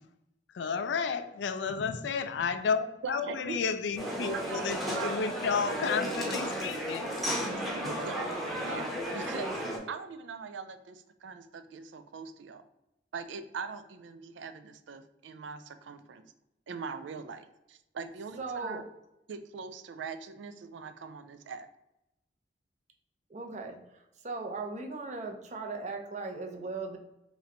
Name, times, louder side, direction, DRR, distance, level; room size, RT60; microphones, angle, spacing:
voice 1, 0.5-7.1, left 5 dB, 70° left, 0.4 m, -32 dB
voice 2, 3.0-3.6 4.2-5.2 5.5-5.6 6.6-6.8 7.5-9.6 9.9-12.6 13.1-16.2 16.7-18.8 19.3-21.7, right 5 dB, 90° right, 0.4 m, -42 dB
sound 1, 4.0-9.8, equal, ahead, 0.8 m, -34 dB
voice 3, 18.4-18.8 23.3-23.8 24.2-27.0, right 3 dB, 40° right, 0.6 m, -37 dB
3.2 x 3.1 x 3.7 m
head